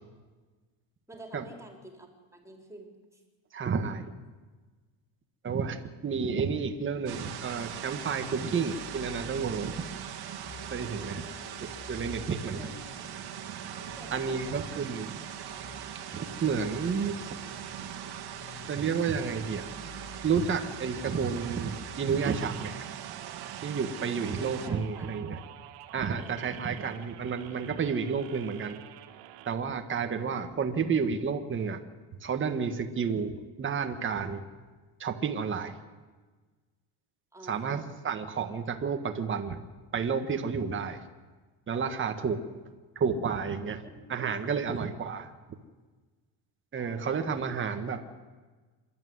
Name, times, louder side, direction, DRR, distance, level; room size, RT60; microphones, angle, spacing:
voice 1, 1.1-3.2 11.2-11.5 12.2-13.4 13.9-14.7 24.3-25.1 26.2-26.7 30.2-30.7 37.3-38.1 43.8-44.0 44.5-44.9 46.8-47.2, right 1 dB, 5° right, 2 dB, 3.9 m, -49 dB
voice 2, 3.5-4.1 5.4-9.8 10.7-11.3 11.9-12.7 14.1-15.1 16.1-17.4 18.7-19.7 20.2-22.8 23.6-25.4 25.9-28.8 29.5-31.8 32.2-34.4 35.0-35.8 37.5-39.6 39.9-41.0 41.7-42.4 42.9-43.8 44.1-45.2 46.7-48.0, right 6 dB, 25° right, 6 dB, 1.6 m, -31 dB
sound 1, 7.1-22.0, left 4 dB, 55° left, 3.2 m, -50 dB
sound 2, 7.1-24.7, right 10 dB, 50° right, 2.3 m, -41 dB
sound 3, 22.2-29.5, right 14 dB, 80° right, 1.8 m, -48 dB
26.5 x 12.0 x 9.6 m, 1.3 s
cardioid pair, 145°, 48 cm